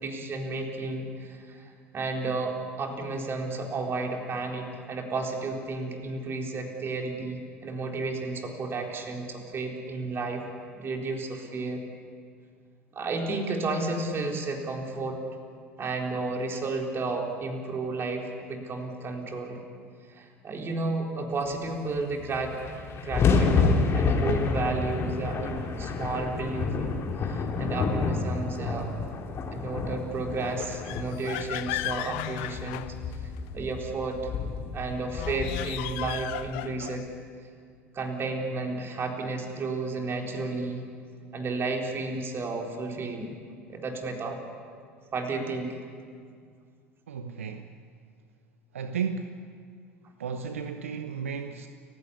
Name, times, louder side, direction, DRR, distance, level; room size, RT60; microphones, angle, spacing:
voice 1, 0.0-10.4 10.7-11.8 12.9-15.2 15.8-19.6 20.1-22.6 22.9-28.9 29.5-32.9 33.2-34.2 34.7-37.0 37.9-40.8 41.3-43.3 43.7-44.4 45.1-45.8, right 3 dB, 35° right, 1 dB, 4.1 m, -32 dB
sound 1, 22.0-22.1 22.2-36.6, left 4 dB, 35° left, 3.1 m, -29 dB
oven door, 30.4-33.5 35.1-37.1, left 17 dB, 60° left, 0.7 m, -36 dB
voice 2, 47.1-47.8 48.7-49.4 50.2-51.7, right 6 dB, 75° right, 8 dB, 0.9 m, -34 dB
29.5 x 16.0 x 8.5 m, 2.1 s
figure-of-eight pair, 70°, 7 cm